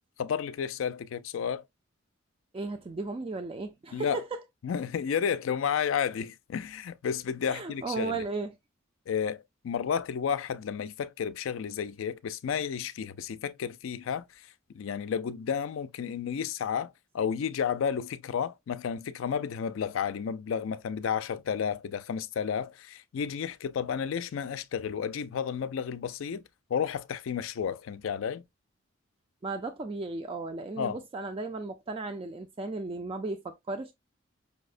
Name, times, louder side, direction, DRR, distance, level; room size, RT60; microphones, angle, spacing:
voice 1, 0.2-1.6 3.9-4.2 4.6-8.2 9.1-14.5 14.7-26.4 26.7-28.4 30.8-31.0, left 7 dB, 70° left, 0.4 m, -32 dB
voice 2, 2.5-4.4 7.5-8.5 29.4-33.9, right 3 dB, 25° right, 0.3 m, -35 dB
5.4 x 2.0 x 2.4 m
head